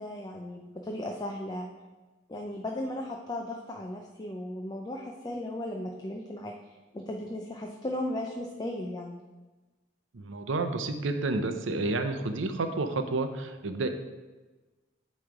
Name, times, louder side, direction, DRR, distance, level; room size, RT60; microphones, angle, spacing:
voice 1, 0.0-1.7 2.3-6.5 6.9-9.2, left 1 dB, 20° left, 1 dB, 0.5 m, -36 dB
voice 2, 10.1-13.9, right 3 dB, 75° right, 7 dB, 0.6 m, -30 dB
8.9 x 3.2 x 4.7 m, 1.2 s
head